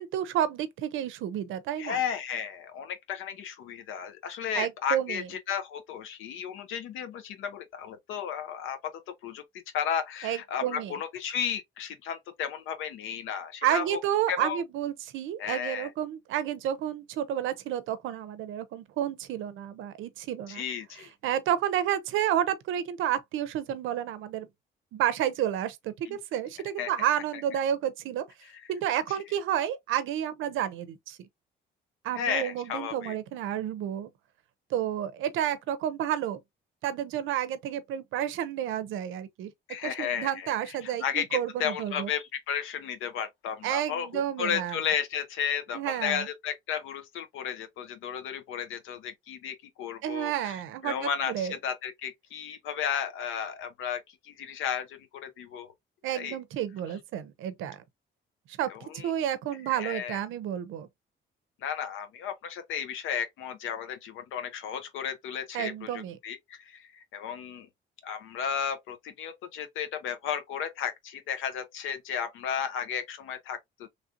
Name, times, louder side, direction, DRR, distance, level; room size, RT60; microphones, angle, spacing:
voice 1, 0.0-2.0 4.5-5.3 10.2-10.9 13.6-20.6 21.2-24.5 24.9-28.2 28.7-31.2 32.0-34.1 34.7-36.4 36.8-39.5 39.8-42.1 43.6-44.8 45.7-46.3 50.0-51.5 56.0-57.8 58.6-60.9 65.5-66.2, right 11 dB, 85° right, 0.6 m, -30 dB
voice 2, 1.8-9.4 9.7-14.0 14.3-14.6 15.4-15.9 20.5-21.1 26.1-26.2 26.8-26.9 28.4-28.7 29.1-29.2 32.1-33.1 39.7-50.6 50.8-55.7 56.1-56.4 58.7-59.1 59.7-60.2 61.6-67.7 68.0-73.9, left 8 dB, 90° left, 0.7 m, -34 dB
3.2 x 2.6 x 2.5 m
cardioid pair, 90°, 20 cm